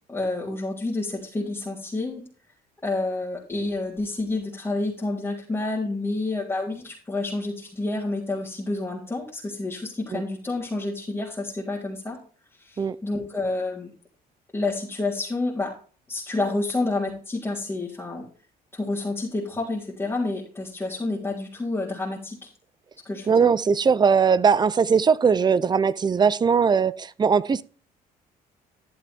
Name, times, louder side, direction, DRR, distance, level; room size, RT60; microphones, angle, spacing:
voice 1, 0.1-2.2 2.8-12.2 12.6-13.9 14.5-15.7 16.1-18.3 18.7-22.5 23.1-23.5, left 2 dB, 15° left, 3.5 m, -29 dB
voice 2, 23.3-27.6, right 6 dB, 25° right, 0.6 m, -20 dB
13.0 x 7.5 x 3.5 m
cardioid pair, 110°, 17 cm